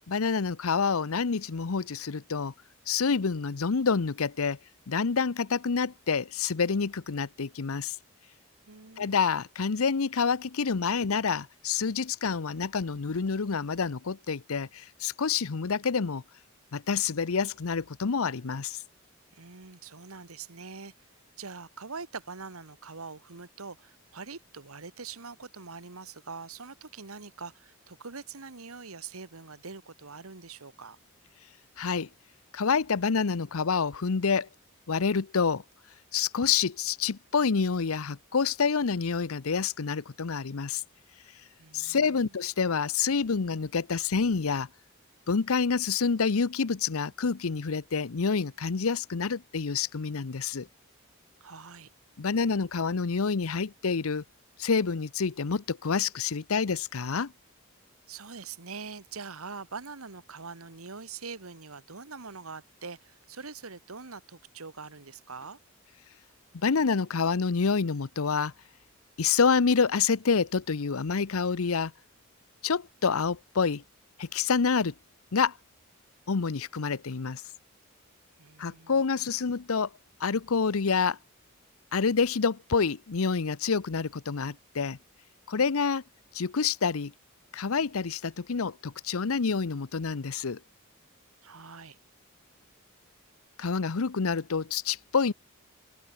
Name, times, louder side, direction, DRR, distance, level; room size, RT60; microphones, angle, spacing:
voice 1, 0.1-2.5 2.9-4.6 4.9-8.0 9.0-16.2 16.7-18.8 31.8-32.1 32.5-34.5 34.9-35.6 36.1-40.8 41.7-44.7 45.3-50.7 52.2-54.2 54.6-57.3 66.6-68.5 69.2-71.9 72.6-73.8 74.2-74.9 75.3-75.5 76.3-77.4 78.6-79.9 80.2-81.2 81.9-85.0 85.5-86.0 86.3-87.1 87.5-90.6 93.6-95.3, left 5 dB, 80° left, 0.7 m, -27 dB
voice 2, 8.6-9.3 19.3-20.9 21.4-31.0 41.6-42.3 51.4-51.9 58.1-65.6 78.4-79.3 91.4-92.0, right 4 dB, 85° right, 1.7 m, -43 dB
head